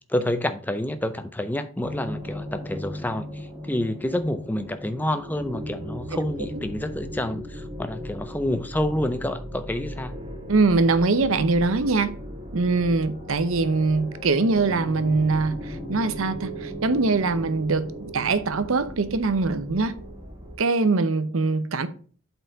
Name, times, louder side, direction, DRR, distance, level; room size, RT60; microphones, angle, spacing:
voice 1, 0.1-10.1, left 1 dB, 10° left, 0.5 m, -28 dB
sound 1, 1.8-20.6, equal, 25° right, 2.2 m, -37 dB
voice 2, 10.5-12.2 12.5-20.0 20.6-21.9, right 3 dB, 75° right, 0.7 m, -22 dB
8.0 x 4.5 x 4.0 m
head